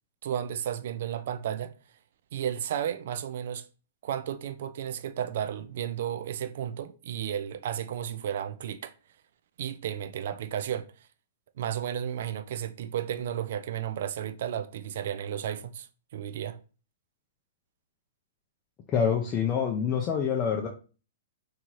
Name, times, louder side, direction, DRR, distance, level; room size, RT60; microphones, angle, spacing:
voice 1, 0.2-1.7 2.3-3.6 4.0-8.9 9.6-10.9 11.6-15.9 16.1-16.6, right 10 dB, 60° right, 0.3 m, -33 dB
voice 2, 18.9-20.7, left 7 dB, 30° left, 0.4 m, -26 dB
2.8 x 2.4 x 3.0 m
hypercardioid pair, 120°, 0 cm